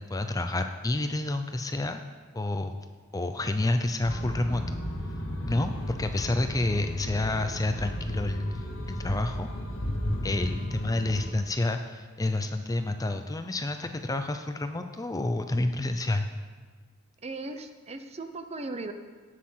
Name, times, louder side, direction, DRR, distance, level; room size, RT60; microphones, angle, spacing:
voice 1, 0.0-2.0 2.3-2.7 3.1-4.8 5.5-9.5 10.2-16.3, left 2 dB, 15° left, 7 dB, 0.5 m, -29 dB
sound 1, 4.0-11.3, equal, 60° left, 1.9 m, -34 dB
voice 2, 17.2-18.9, right 2 dB, 30° right, 8 dB, 0.7 m, -37 dB
17.5 x 6.6 x 5.7 m, 1.5 s
head